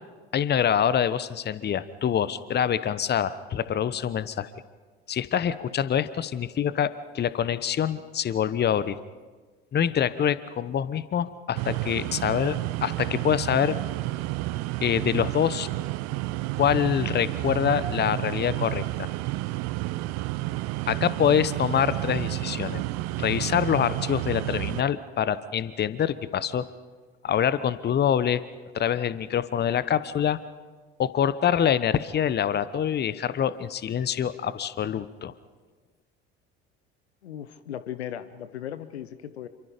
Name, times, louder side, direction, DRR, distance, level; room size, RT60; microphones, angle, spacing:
voice 1, 0.3-4.5 5.1-9.0 9.7-13.8 14.8-15.7 16.6-19.1 20.9-22.8 23.2-26.7 27.2-28.4 28.7-30.4 31.0-35.3, left 9 dB, 30° left, 15 dB, 1.0 m, -25 dB
sound 1, 11.6-24.8, right 18 dB, 55° right, 0.7 m, -30 dB
voice 2, 37.2-39.5, left 10 dB, 80° left, 13 dB, 1.0 m, -37 dB
27.5 x 24.5 x 5.1 m, 1.4 s
figure-of-eight pair, 60°, 32 cm